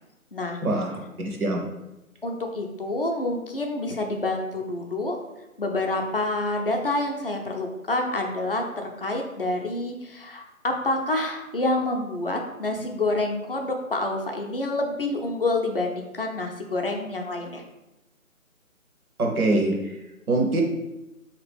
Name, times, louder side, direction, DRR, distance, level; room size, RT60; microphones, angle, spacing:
voice 1, 0.6-1.0 1.2-1.6 19.2-20.6, right 2 dB, 80° right, 0 dB, 1.1 m, -24 dB
voice 2, 2.2-5.2 5.6-17.6, left 2 dB, 40° left, 2 dB, 0.5 m, -28 dB
4.1 x 2.9 x 3.3 m, 0.96 s
figure-of-eight pair, 155°, 43 cm